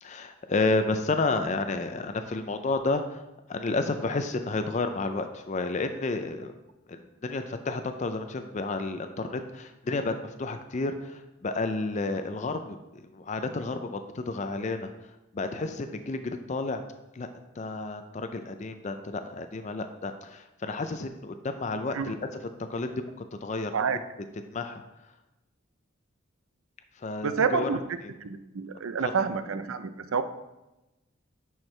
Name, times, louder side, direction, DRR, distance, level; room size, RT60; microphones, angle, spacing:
voice 1, 0.0-3.2 3.5-6.5 6.9-12.8 13.1-14.9 15.3-16.8 17.1-17.3 17.6-22.2 22.7-23.1 23.4-23.7 24.5-24.8 27.0-27.7 29.0-29.1, left 3 dB, 35° left, 8 dB, 0.4 m, -31 dB
voice 2, 27.2-27.8 28.2-30.2, right 5 dB, 80° right, 11 dB, 0.5 m, -28 dB
10.5 x 4.6 x 3.2 m, 0.98 s
head